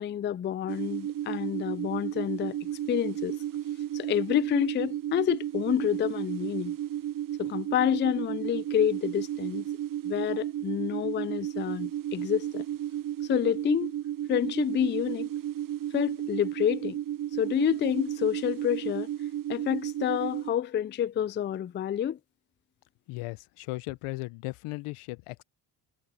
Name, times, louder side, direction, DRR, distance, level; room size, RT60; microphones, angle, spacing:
voice 1, 0.0-3.4 3.9-6.7 7.4-9.7 10.0-12.6 13.2-13.9 14.3-15.3 15.9-17.0 17.4-19.1 19.5-22.2, left 9 dB, 25° left, 0.3 m, -28 dB
sound 1, 0.7-20.5, right 11 dB, 40° right, 0.8 m, -33 dB
voice 2, 23.1-25.4, left 21 dB, 85° left, 0.8 m, -37 dB
supercardioid pair, 60°, 50 cm